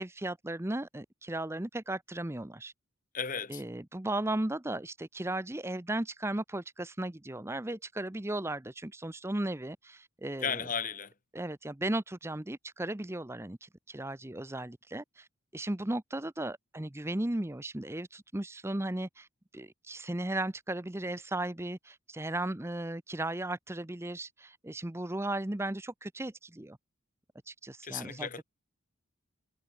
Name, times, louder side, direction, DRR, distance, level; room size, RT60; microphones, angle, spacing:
voice 1, 0.0-2.7 3.5-10.6 11.3-15.3 15.5-19.3 19.5-26.8 27.5-28.3, right 1 dB, 10° right, 0.6 m, -36 dB
voice 2, 3.1-3.6 10.4-11.1 27.8-28.4, left 6 dB, 35° left, 1.7 m, -35 dB
head